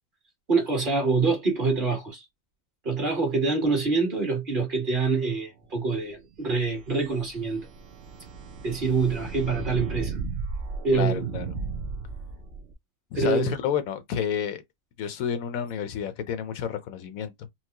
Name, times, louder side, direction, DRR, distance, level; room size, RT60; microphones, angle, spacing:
voice 1, 0.5-2.2 2.8-7.6 8.6-10.2 10.8-11.3 13.1-13.5, right 4 dB, 40° right, 1.5 m, -25 dB
sound 1, 6.4-12.7, right 4 dB, 60° right, 0.7 m, -35 dB
voice 2, 10.9-11.5 13.1-14.6 15.0-17.3, left 8 dB, 80° left, 1.1 m, -30 dB
4.4 x 2.0 x 2.8 m
omnidirectional pair, 1.4 m